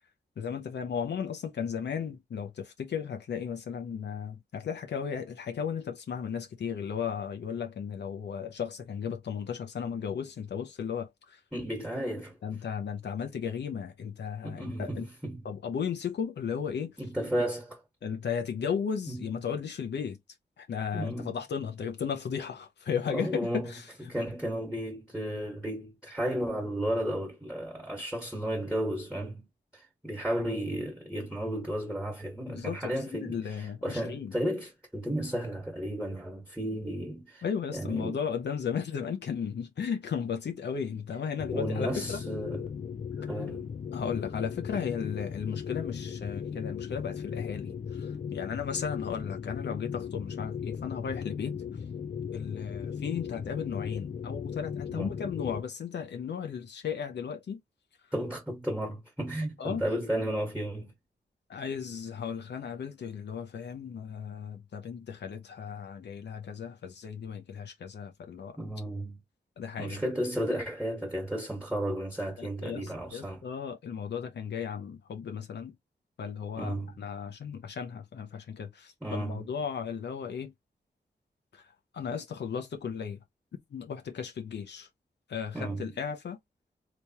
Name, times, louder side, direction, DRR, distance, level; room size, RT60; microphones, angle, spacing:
voice 1, 0.4-11.4 12.4-15.0 15.4-17.0 18.0-20.2 20.6-24.3 32.5-34.3 37.4-42.2 43.9-51.6 52.3-57.6 59.6-59.8 61.5-68.6 69.6-70.0 72.4-75.8 76.2-80.5 81.5-83.2 83.7-84.9 85.3-86.4, left 7 dB, 80° left, 0.7 m, -35 dB
voice 2, 11.5-12.4 14.4-15.5 17.0-17.8 19.1-19.3 20.9-21.4 23.1-23.6 24.1-29.5 29.7-37.4 37.7-38.2 41.5-42.6 43.3-43.7 54.9-55.1 58.1-60.9 68.6-69.2 69.8-73.4 76.6-77.0 79.0-79.5 85.5-85.9, right 1 dB, 5° right, 1.4 m, -33 dB
sound 1, 41.4-55.6, left 7 dB, 45° left, 0.4 m, -37 dB
3.4 x 3.0 x 2.8 m
wide cardioid pair, 80°, 18 cm